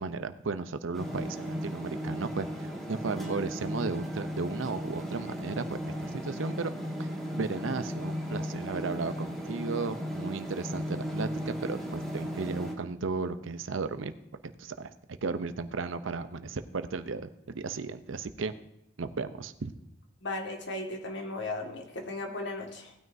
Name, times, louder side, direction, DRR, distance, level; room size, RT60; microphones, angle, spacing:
voice 1, 0.0-6.7 7.0-7.1 7.3-14.1 14.4-14.9 15.2-18.5 19.0-19.7, right 4 dB, 85° right, 11 dB, 0.6 m, -35 dB
sound 1, 0.9-12.7, equal, ahead, 1.9 m, -36 dB
voice 2, 20.2-22.9, left 2 dB, 65° left, 2 dB, 1.9 m, -36 dB
18.0 x 9.3 x 2.7 m, 0.80 s
head